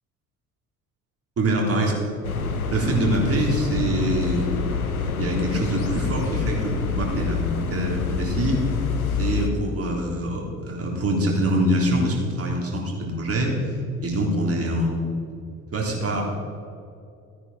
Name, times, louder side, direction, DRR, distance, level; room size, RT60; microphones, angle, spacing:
voice 1, 1.4-1.9 2.7-4.5 5.2-8.6 9.2-13.5 14.0-15.1 15.7-16.2, right 1 dB, 35° right, -1 dB, 3.5 m, -24 dB
sound 1, 2.2-9.5, left 5 dB, 90° left, 0.8 m, -27 dB
14.5 x 9.8 x 4.3 m, 2.5 s
figure-of-eight pair, 55°, 42 cm